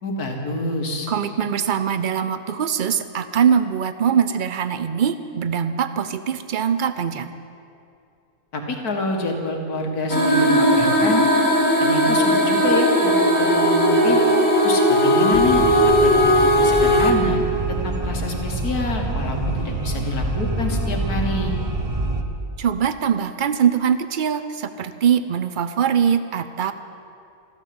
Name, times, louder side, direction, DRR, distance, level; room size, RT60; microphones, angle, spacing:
voice 1, 0.0-1.1 8.5-11.2 11.8-14.2 14.6-17.4 17.8-21.5, left 2 dB, 80° left, 2 dB, 2.4 m, -27 dB
voice 2, 1.1-7.3 22.6-26.7, right 8 dB, 70° right, 11 dB, 0.4 m, -22 dB
sound 1, 10.1-17.1, equal, 5° left, 2.0 m, -17 dB
sound 2, 15.3-22.2, right 2 dB, 25° right, 0.9 m, -26 dB
14.5 x 13.0 x 7.8 m, 2.6 s
omnidirectional pair, 1.6 m